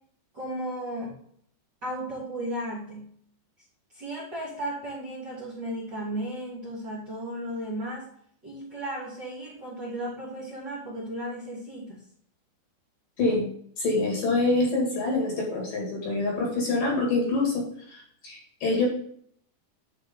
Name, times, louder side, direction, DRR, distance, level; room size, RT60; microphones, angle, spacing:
voice 1, 0.3-1.1 1.8-3.1 3.9-8.1 8.4-12.0, right 1 dB, 25° right, -7 dB, 2.9 m, -35 dB
voice 2, 13.2-13.5 13.8-18.9, left 2 dB, 50° left, -2 dB, 3.6 m, -26 dB
10.5 x 5.5 x 3.8 m, 0.63 s
omnidirectional pair, 5.4 m